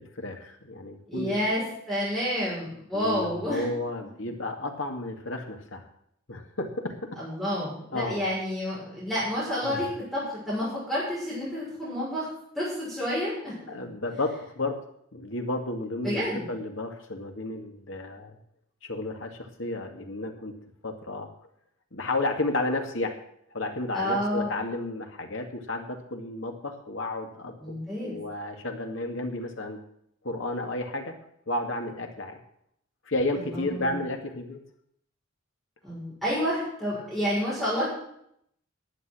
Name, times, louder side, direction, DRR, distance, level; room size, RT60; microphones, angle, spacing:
voice 1, 0.0-1.4 2.9-5.8 6.3-7.2 7.9-8.2 9.6-9.8 13.7-14.8 15.1-18.4 18.8-20.6 20.8-21.3 21.9-23.2 23.5-27.6 28.0-29.8 30.2-31.2 31.5-32.4 33.1-34.6, left 2 dB, 75° left, 4 dB, 2.2 m, -32 dB
voice 2, 1.1-3.6 7.2-12.3 12.5-13.5 16.0-16.5 23.9-24.5 27.6-28.2 33.5-34.0 35.8-37.9, equal, ahead, -10 dB, 6.1 m, -29 dB
11.0 x 8.3 x 8.5 m, 0.71 s
head